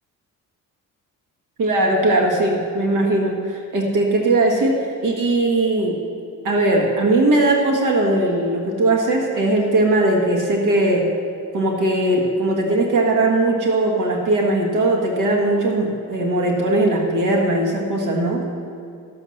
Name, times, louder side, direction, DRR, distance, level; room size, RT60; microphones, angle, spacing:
voice 1, 1.6-6.0 6.4-11.1 11.5-18.4, right 2 dB, 70° right, 1 dB, 1.5 m, -19 dB
13.5 x 7.0 x 6.4 m, 2.5 s
cardioid pair, 160°, 33 cm